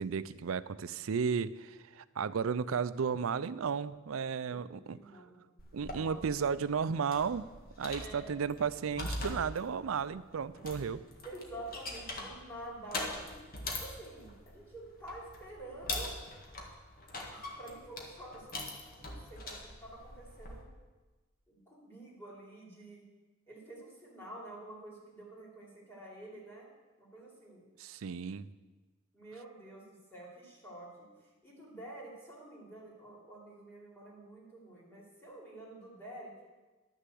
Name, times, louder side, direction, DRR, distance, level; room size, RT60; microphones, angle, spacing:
voice 1, 0.0-5.0 5.7-7.5 7.8-11.0 27.8-28.5, right 6 dB, 85° right, 16 dB, 0.5 m, -34 dB
voice 2, 4.4-5.4 5.8-6.2 8.0-8.3 11.2-13.3 13.8-16.2 17.3-18.5 19.0-20.6 21.5-23.1 23.5-26.7 27.0-27.6 29.1-31.1 31.4-36.3, right 1 dB, 10° left, -4 dB, 3.3 m, -49 dB
sound 1, 5.6-20.6, left 2 dB, 45° left, 1.8 m, -43 dB
11.5 x 6.7 x 7.7 m, 1.2 s
head